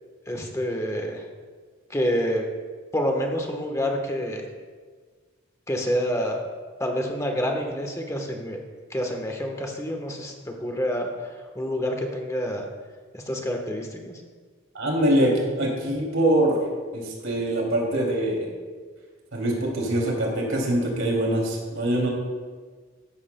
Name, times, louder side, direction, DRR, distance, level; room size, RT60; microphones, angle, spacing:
voice 1, 0.3-1.2 1.9-2.5 2.9-4.5 5.7-6.4 6.8-8.6 8.9-12.7 13.1-14.2, equal, 15° left, 3 dB, 1.1 m, -28 dB
voice 2, 14.7-16.6 16.9-18.5 19.3-22.1, right 1 dB, 75° right, -2 dB, 2.7 m, -23 dB
13.5 x 12.0 x 2.2 m, 1.5 s
head